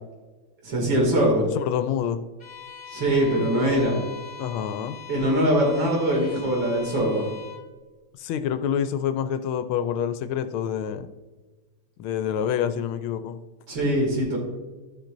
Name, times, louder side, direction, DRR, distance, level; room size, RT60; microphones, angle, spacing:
voice 1, 0.6-1.5 2.9-4.0 5.1-7.3 13.7-14.4, right 1 dB, 65° right, -1 dB, 3.1 m, -22 dB
voice 2, 1.6-2.2 4.4-5.0 8.2-11.1 12.0-13.4, left 9 dB, 80° left, 10 dB, 1.4 m, -27 dB
Bowed string instrument, 2.4-7.7, left 8 dB, 30° left, 1.8 m, -42 dB
13.5 x 5.9 x 2.6 m, 1.3 s
omnidirectional pair, 2.3 m